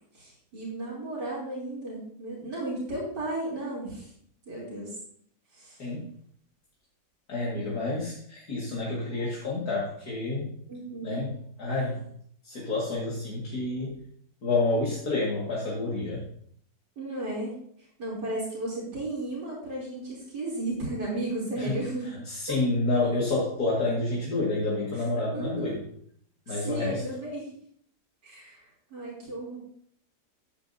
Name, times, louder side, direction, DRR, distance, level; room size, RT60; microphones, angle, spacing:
voice 1, 0.1-4.1 4.5-4.9 5.5-5.8 10.7-11.2 17.0-17.6 18.0-22.1 22.5-22.6 25.3-25.8 26.5-27.5 28.2-28.6 28.9-29.6, right 2 dB, 85° right, -6 dB, 4.1 m, -34 dB
voice 2, 7.3-10.5 11.0-12.0 12.4-14.0 14.4-16.2 21.6-21.8 22.3-25.8 26.5-27.0, left 2 dB, 65° left, -6 dB, 2.6 m, -29 dB
13.5 x 8.8 x 2.8 m, 0.65 s
omnidirectional pair, 1.8 m